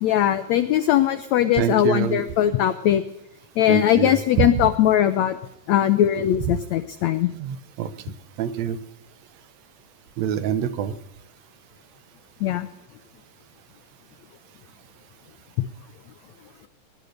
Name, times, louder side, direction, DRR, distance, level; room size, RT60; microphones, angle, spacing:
voice 1, 0.0-3.0 3.6-5.4 5.7-7.3 12.4-12.7 15.6-15.7, left 11 dB, 85° left, 12 dB, 1.5 m, -20 dB
voice 2, 1.5-2.2 3.7-4.5 6.5-6.6 7.3-7.9 8.4-8.8 10.2-10.9, right 9 dB, 65° right, 12 dB, 1.8 m, -25 dB
19.0 x 11.0 x 6.5 m, 0.88 s
omnidirectional pair, 4.1 m